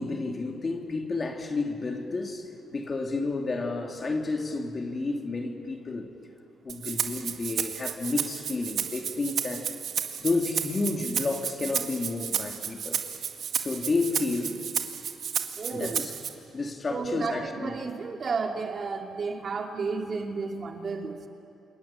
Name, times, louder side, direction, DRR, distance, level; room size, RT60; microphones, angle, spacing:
voice 1, 0.0-6.1 6.6-9.7 10.2-13.0 13.6-14.7 15.7-16.1 16.5-17.7, left 3 dB, 35° left, 2 dB, 3.2 m, -31 dB
Rattle (instrument), 6.7-16.3, right 8 dB, 60° right, 2.0 m, -32 dB
voice 2, 15.6-16.0 16.9-21.3, right 4 dB, 45° right, 3 dB, 2.5 m, -32 dB
28.5 x 27.5 x 7.5 m, 2.7 s
cardioid pair, 90°, 0 cm